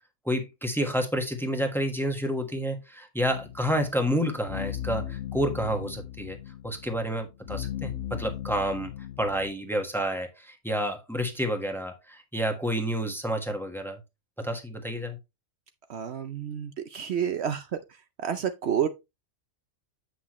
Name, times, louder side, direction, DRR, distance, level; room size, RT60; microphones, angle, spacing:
voice 1, 0.2-6.4 6.6-8.9 9.2-14.0 14.4-15.2, equal, ahead, 1.3 m, -29 dB
sound 1, 3.3-9.5, left 11 dB, 80° left, 1.0 m, -37 dB
voice 2, 15.9-17.8 18.2-18.9, right 8 dB, 65° right, 0.9 m, -29 dB
8.2 x 6.0 x 3.1 m
omnidirectional pair, 1.3 m